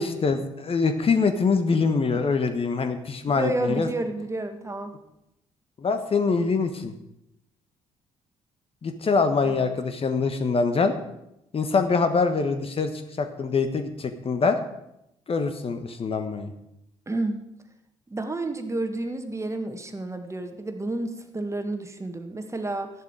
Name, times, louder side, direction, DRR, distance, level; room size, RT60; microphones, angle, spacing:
voice 1, 0.0-3.9 5.8-6.9 8.8-10.9 11.5-14.6 15.3-16.5, left 4 dB, 35° left, 8 dB, 1.3 m, -24 dB
voice 2, 3.4-5.0 9.4-9.7 17.1-17.4 18.1-22.9, right 2 dB, 20° right, 6 dB, 1.8 m, -30 dB
13.5 x 11.0 x 5.0 m, 0.83 s
figure-of-eight pair, 45°, 16 cm